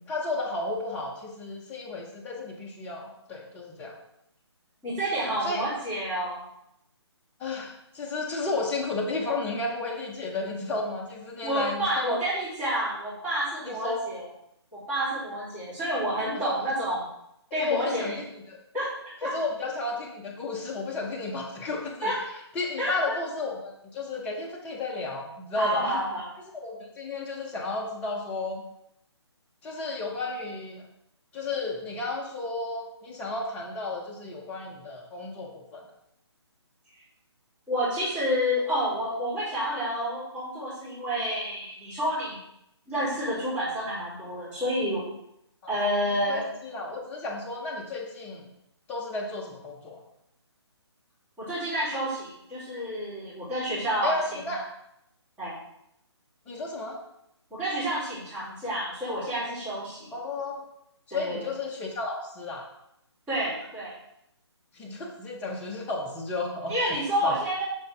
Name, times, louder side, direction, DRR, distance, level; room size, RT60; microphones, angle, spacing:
voice 1, 0.1-3.9 5.4-5.7 7.4-12.2 13.6-14.0 16.4-16.6 17.5-18.6 19.2-22.1 22.5-26.0 26.6-28.6 29.6-30.9 31.3-35.8 45.6-45.8 46.1-48.4 48.9-50.0 54.0-54.7 56.5-57.0 60.1-60.6 61.1-62.7 64.7-66.7 67.2-67.3, left 3 dB, 10° left, -1 dB, 0.8 m, -33 dB
voice 2, 4.8-6.5 11.4-14.2 14.7-17.0 17.5-18.2 18.7-19.4 22.0-22.3 22.8-23.0 25.5-26.3 37.7-42.4 42.9-45.1 45.7-46.5 51.4-54.6 55.4-55.5 57.5-60.1 61.1-61.5 63.3-63.9 66.7-67.6, equal, 10° right, -12 dB, 2.9 m, -29 dB
7.8 x 5.9 x 3.4 m, 0.80 s
figure-of-eight pair, 140°, 15 cm